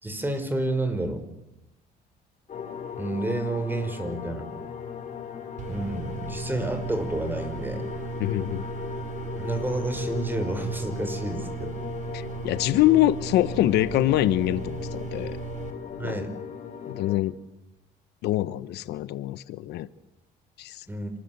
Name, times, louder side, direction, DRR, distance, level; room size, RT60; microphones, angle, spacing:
voice 1, 0.0-1.3 3.0-4.5 5.7-7.9 9.4-11.8 16.0-16.3 20.9-21.1, right 2 dB, 10° right, 5.6 m, -30 dB
sound 1, 2.5-17.2, left 7 dB, 45° left, 7.2 m, -37 dB
sound 2, 5.6-15.7, right 7 dB, 45° right, 4.8 m, -37 dB
voice 2, 8.2-8.6 12.1-15.4 16.0-16.1 16.8-17.3 18.2-19.9 20.6-20.8, left 14 dB, 80° left, 1.1 m, -24 dB
28.0 x 20.5 x 8.1 m
cardioid pair, 110°, 17 cm